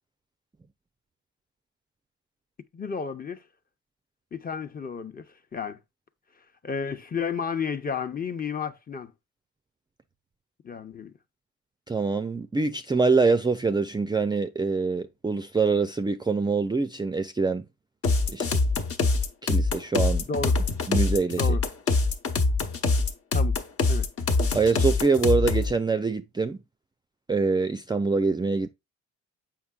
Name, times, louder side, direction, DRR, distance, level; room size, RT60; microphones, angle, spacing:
voice 1, 2.7-3.4 4.3-5.2 5.5-5.8 6.6-9.1 10.6-11.1 20.3-20.6 21.4-21.6 23.3-23.6 23.9-24.1, left 6 dB, 30° left, 0.8 m, -32 dB
voice 2, 11.9-17.7 18.3-18.6 19.4-20.3 20.9-21.5 24.5-26.6 27.3-28.7, right 4 dB, 15° right, 0.4 m, -25 dB
sound 1, 18.0-25.7, left 3 dB, 50° left, 1.1 m, -24 dB
7.1 x 5.6 x 2.3 m
cardioid pair, 90°, 30 cm